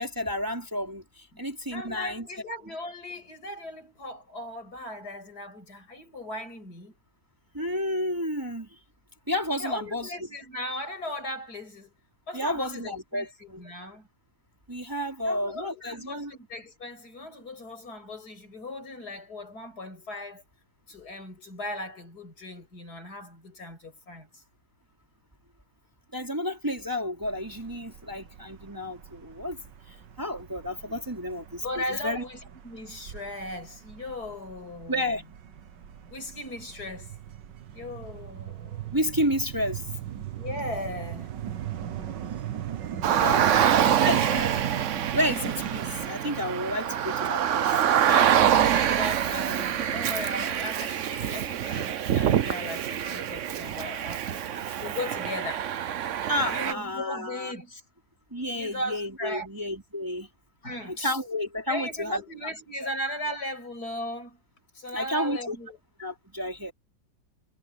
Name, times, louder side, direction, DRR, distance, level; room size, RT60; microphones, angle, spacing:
voice 1, 0.0-2.3 7.5-8.7 9.3-10.1 12.3-13.6 14.7-16.3 26.1-29.6 29.9-32.2 34.9-35.2 38.9-39.9 43.2-43.5 44.0-44.5 45.1-47.8 56.2-57.5 58.3-60.3 60.9-62.2 62.8-62.9 64.9-65.6 66.0-66.7, left 1 dB, 10° right, 3.6 m, -31 dB
voice 2, 1.7-7.0 9.6-11.9 12.3-14.1 15.3-20.4 20.9-24.4 31.6-35.1 36.1-37.1 37.7-38.9 40.4-41.3 43.4-44.6 48.0-55.7 56.5-57.8 58.5-59.5 60.6-61.2 61.7-64.4 64.7-65.8, left 1 dB, 55° left, 6.9 m, -37 dB
sound 1, 27.2-46.1, right 10 dB, 75° right, 1.8 m, -39 dB
Car, 43.0-56.7, right 9 dB, 55° right, 0.9 m, -25 dB
omnidirectional pair, 2.0 m